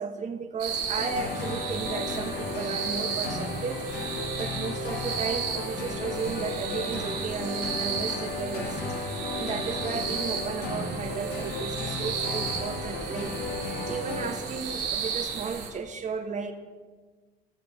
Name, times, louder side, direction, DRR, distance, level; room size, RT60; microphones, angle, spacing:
voice 1, 0.0-3.9 4.4-8.8 9.3-13.3 13.9-16.5, right 5 dB, 45° right, 6 dB, 1.6 m, -34 dB
sound 1, 0.6-15.7, right 6 dB, 70° right, 3.0 m, -34 dB
sound 2, 1.0-14.7, left 3 dB, 90° left, 3.1 m, -34 dB
14.5 x 14.0 x 4.4 m, 1.4 s
cardioid pair, 110°, 17 cm